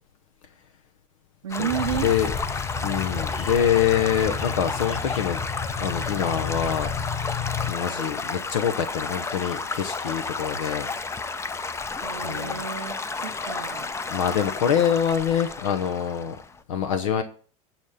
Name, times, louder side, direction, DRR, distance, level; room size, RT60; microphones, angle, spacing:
voice 1, 1.4-2.1 12.0-13.9, right 9 dB, 85° right, 11 dB, 0.8 m, -31 dB
Stream / Gurgling / Trickle dribble, 1.5-16.6, left 4 dB, 15° left, 0.6 m, -32 dB
sound 1, 1.7-7.7, left 5 dB, 45° left, 5.7 m, -32 dB
voice 2, 2.0-2.3 2.8-5.4 5.8-7.3 7.7-10.9 12.2-12.6 13.3-13.5 14.1-16.4 16.7-17.2, left 8 dB, 75° left, 7 dB, 0.9 m, -25 dB
9.1 x 5.9 x 5.1 m, 0.42 s
hypercardioid pair, 80°, 17 cm